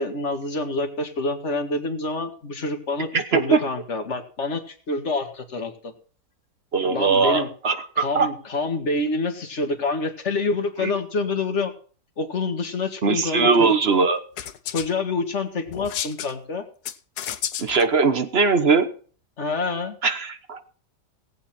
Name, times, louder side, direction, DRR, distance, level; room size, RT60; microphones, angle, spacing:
voice 1, 0.0-5.9 6.9-7.5 8.0-11.7 12.2-13.8 14.7-16.6 19.4-20.0, left 3 dB, 45° left, 5 dB, 1.9 m, -27 dB
voice 2, 3.1-3.6 6.7-8.3 10.8-10.9 13.0-14.2 17.6-18.9 20.0-20.7, right 4 dB, 40° right, 9 dB, 1.2 m, -20 dB
sound 1, 14.4-14.9 15.7-16.3 16.9-17.9, left 10 dB, 70° left, 1.3 m, -31 dB
18.5 x 8.2 x 4.3 m, 0.42 s
omnidirectional pair, 1.8 m